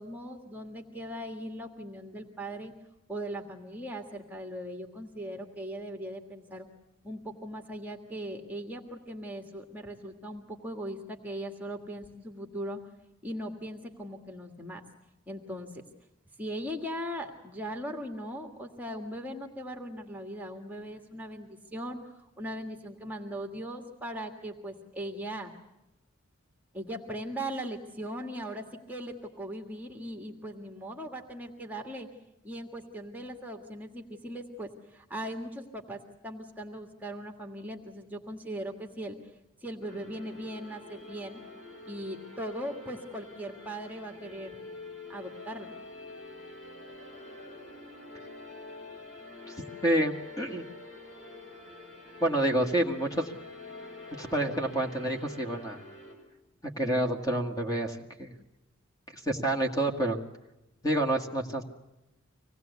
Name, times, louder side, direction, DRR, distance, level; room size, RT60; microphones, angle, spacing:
voice 1, 0.0-2.7 3.1-6.7 7.0-12.8 13.2-14.8 15.3-15.8 16.4-25.5 26.7-32.1 32.4-39.2 39.6-41.4 41.9-44.6 45.1-45.7, right 1 dB, 10° right, 3 dB, 1.7 m, -39 dB
sound 1, 39.8-56.1, left 2 dB, 60° left, 7.7 m, -46 dB
voice 2, 49.8-50.6 52.2-53.3 54.2-55.8 56.8-58.3 59.3-60.2 60.8-61.6, right 1 dB, 15° left, 3 dB, 2.0 m, -28 dB
25.5 x 18.5 x 8.2 m, 0.94 s
head